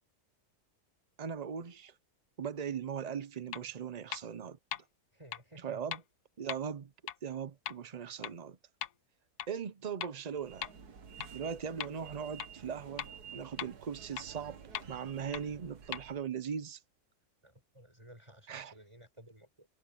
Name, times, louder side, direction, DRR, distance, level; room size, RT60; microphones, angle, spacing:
voice 1, 1.2-1.9 2.4-4.6 5.6-6.0 6.4-6.9 7.2-8.6 9.5-10.7 11.3-14.6 14.9-16.8 18.5-18.7, right 7 dB, 60° right, 0.4 m, -39 dB
sound 1, 3.5-3.6 4.1-4.2 4.7-4.8 5.3-5.4 5.9-6.0 6.5-6.6 7.1-7.2 7.7-7.8 8.2-8.3 8.8-8.9 9.4-9.5 10.0-10.1 10.6-10.7 11.2-11.3 11.8-11.9 12.4-12.5 13.0-13.1 13.6-13.7 14.2-14.3 14.7-14.8 15.3-15.4 15.9-16.0, left 11 dB, 85° left, 1.3 m, -38 dB
voice 2, 5.1-5.9 17.4-19.7, right 1 dB, 20° right, 6.8 m, -55 dB
sound 2, 10.3-16.3, right 7 dB, 80° right, 2.1 m, -51 dB
omnidirectional pair, 1.7 m